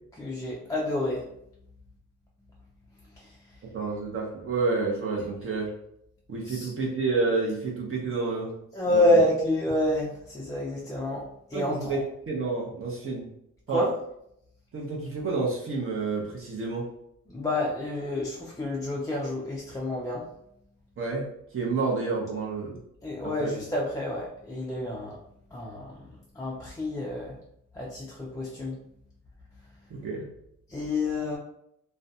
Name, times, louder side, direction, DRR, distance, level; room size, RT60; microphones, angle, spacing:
voice 1, 0.2-1.3 3.1-3.6 6.4-6.7 8.7-12.0 13.7-13.9 17.3-20.3 23.0-25.2 25.5-27.4 27.7-28.8 30.7-31.4, left 1 dB, 10° left, -5 dB, 0.3 m, -28 dB
voice 2, 3.7-5.7 6.3-8.5 8.9-9.1 11.5-13.3 13.7-13.8 14.7-16.9 21.0-21.3 21.5-22.8 23.4-23.6 29.9-30.2, right 3 dB, 45° right, -3 dB, 0.6 m, -29 dB
2.4 x 2.1 x 2.6 m, 0.76 s
cardioid pair, 120°, 32 cm